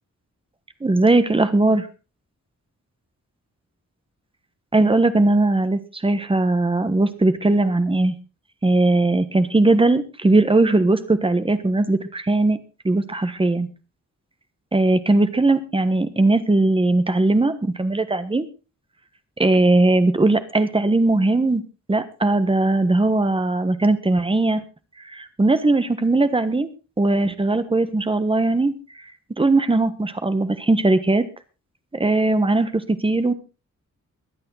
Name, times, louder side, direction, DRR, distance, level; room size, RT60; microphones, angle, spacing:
voice 1, 0.8-1.9 4.7-8.1 8.6-12.6 12.8-13.7 14.7-18.5 19.4-21.6 21.9-24.6 25.0-26.7 27.0-28.7 29.4-31.3 31.9-33.3, right 2 dB, 20° right, 11 dB, 1.3 m, -19 dB
23.0 x 8.7 x 4.0 m, 0.32 s
wide cardioid pair, 165°, 30 cm